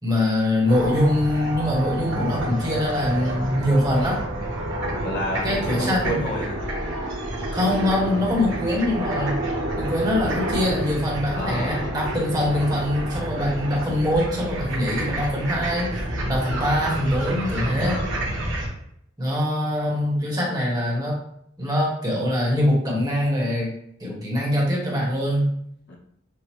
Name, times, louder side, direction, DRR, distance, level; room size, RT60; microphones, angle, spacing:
voice 1, 0.0-4.2 5.4-6.3 7.5-9.4 9.7-16.0 16.3-18.0 19.2-21.1 21.6-23.7 24.0-25.5, left 1 dB, 20° right, -4 dB, 1.4 m, -23 dB
sound 1, 0.7-18.7, right 1 dB, 70° right, 1.3 m, -29 dB
voice 2, 5.0-6.6 11.3-12.0 19.9-20.1 25.9-26.0, equal, 60° left, -2 dB, 1.0 m, -30 dB
6.6 x 2.4 x 3.0 m, 0.71 s
head